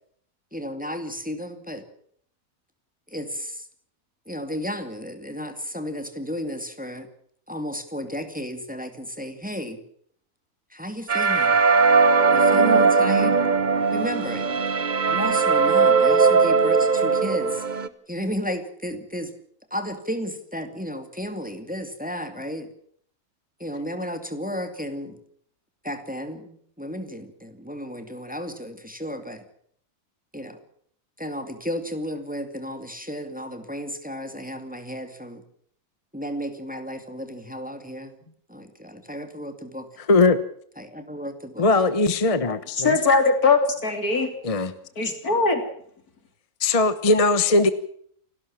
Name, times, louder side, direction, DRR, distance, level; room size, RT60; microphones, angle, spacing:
voice 1, 0.5-1.8 3.1-3.7 4.3-7.1 7.5-9.8 10.7-11.5 12.3-13.4 13.9-14.6 15.0-17.6 18.1-19.3 19.7-22.7 23.6-25.2 25.8-29.4 30.3-30.6 31.2-35.4 36.1-38.2 38.5-39.9 40.8-41.7 45.0-45.1, equal, 5° right, 7 dB, 2.3 m, -33 dB
sound 1, 11.1-17.9, right 4 dB, 35° right, 1.1 m, -19 dB
voice 2, 40.1-40.4 41.6-43.0 44.4-44.7 46.6-47.7, left 3 dB, 25° left, 12 dB, 1.1 m, -19 dB
voice 3, 42.8-44.3 45.0-45.6, left 4 dB, 85° left, 6 dB, 3.8 m, -20 dB
28.5 x 13.0 x 7.3 m, 0.62 s
omnidirectional pair, 1.5 m